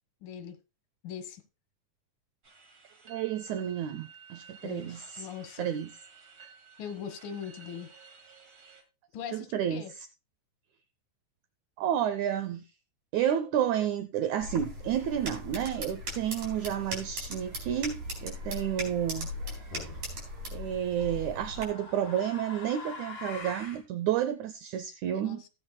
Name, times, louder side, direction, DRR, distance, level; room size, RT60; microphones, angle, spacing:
voice 1, 0.2-0.6 1.0-1.4 4.6-5.7 6.8-7.9 9.1-9.9 25.1-25.5, left 8 dB, 80° left, 2.9 m, -41 dB
sound 1, 2.4-8.8, right 6 dB, 35° right, 2.0 m, -54 dB
voice 2, 3.1-5.3 5.6-5.9 9.3-9.8 11.8-12.6 13.1-19.3 20.5-25.4, right 10 dB, 75° right, 1.9 m, -31 dB
sound 2, 14.4-21.7, equal, 55° right, 5.3 m, -39 dB
sound 3, 19.7-20.1 21.1-23.8, left 4 dB, 35° left, 4.0 m, -43 dB
17.0 x 8.8 x 2.2 m
omnidirectional pair, 3.8 m